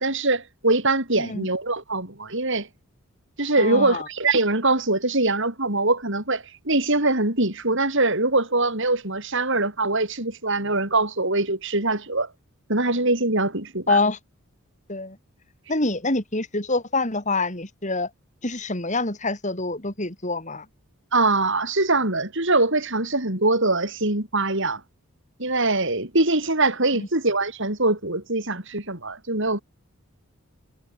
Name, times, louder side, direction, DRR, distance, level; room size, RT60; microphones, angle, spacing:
voice 1, 0.0-2.7 3.4-12.3 12.7-14.0 21.1-24.8 25.4-29.6, right 2 dB, 55° right, 6.0 m, -23 dB
voice 2, 3.6-4.1 13.9-14.2 14.9-15.2 15.7-18.1 18.4-20.6 27.0-27.1, left 3 dB, 35° left, 4.5 m, -26 dB
head